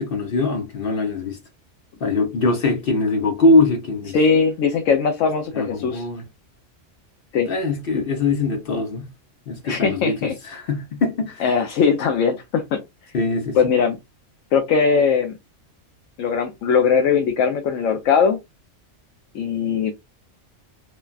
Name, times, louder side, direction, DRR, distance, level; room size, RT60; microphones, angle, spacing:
voice 1, 0.0-1.4 2.0-4.2 5.5-6.2 7.4-9.1 9.5-11.4 13.1-13.7, left 3 dB, 55° left, 0.8 m, -22 dB
voice 2, 4.1-6.1 7.3-7.5 9.6-10.3 11.4-12.8 13.5-14.0 14.5-15.3 16.2-18.4 19.3-19.9, left 6 dB, 90° left, 1.0 m, -20 dB
3.2 x 2.2 x 2.3 m
omnidirectional pair, 1.3 m